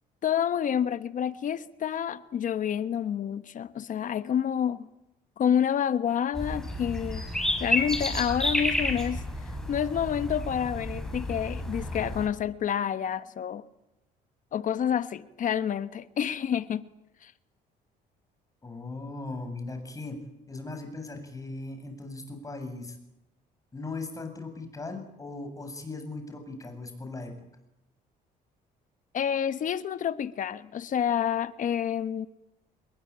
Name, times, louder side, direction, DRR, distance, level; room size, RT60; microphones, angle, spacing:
voice 1, 0.2-4.9 5.4-7.3 7.6-9.2 9.7-13.6 14.5-16.9 17.2-17.3 29.1-32.3, left 9 dB, 50° left, 1.2 m, -28 dB
sound 1, 6.3-12.3, left 1 dB, 5° left, 6.6 m, -31 dB
voice 2, 18.6-20.2 20.5-23.0 23.7-27.3, left 3 dB, 20° left, 7.7 m, -38 dB
27.5 x 22.0 x 8.8 m
cardioid pair, 110°, 17 cm